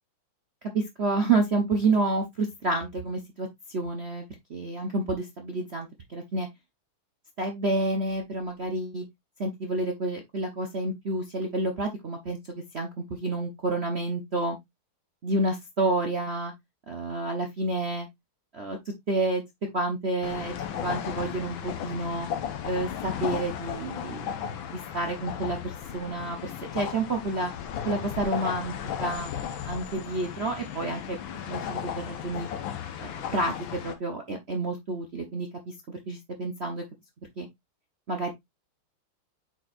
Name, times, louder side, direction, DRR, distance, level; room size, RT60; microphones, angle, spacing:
voice 1, 0.7-4.2 4.5-6.5 7.4-9.0 9.4-14.6 15.2-16.5 16.9-18.1 18.5-19.4 19.7-20.5 20.8-22.3 22.6-24.2 24.7-27.5 27.8-28.7 29.0-29.3 29.6-31.2 31.5-32.5 33.0-36.8 37.4-37.5 38.1-38.3, right 2 dB, 45° right, 0.9 m, -29 dB
sound 1, 20.2-34.0, left 9 dB, 70° left, 1.7 m, -35 dB
8.8 x 4.6 x 2.5 m
omnidirectional pair, 2.3 m